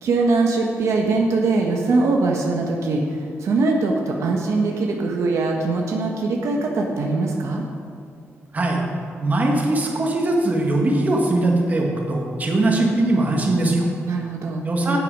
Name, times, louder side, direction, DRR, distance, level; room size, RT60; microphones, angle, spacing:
voice 1, 0.0-7.6 14.0-14.7, right 3 dB, 75° right, 1 dB, 1.1 m, -22 dB
voice 2, 9.2-13.9 14.6-15.0, right 2 dB, 30° right, -1 dB, 1.6 m, -20 dB
9.4 x 7.9 x 5.4 m, 2.3 s
wide cardioid pair, 140°, 5 cm